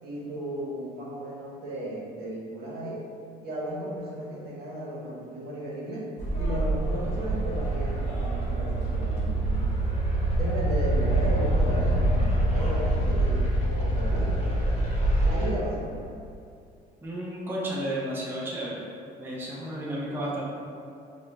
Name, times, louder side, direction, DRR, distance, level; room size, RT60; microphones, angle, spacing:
voice 1, 0.0-3.0 3.4-6.1 6.4-9.6 10.3-14.7 15.2-16.0, right 1 dB, 65° right, -5 dB, 0.9 m, -35 dB
sound 1, 6.2-15.5, right 1 dB, 40° left, 0.9 m, -25 dB
voice 2, 17.0-18.8 19.2-20.4, right 1 dB, 10° right, -5 dB, 0.5 m, -32 dB
3.7 x 2.1 x 3.1 m, 2.5 s
cardioid pair, 110°, 17 cm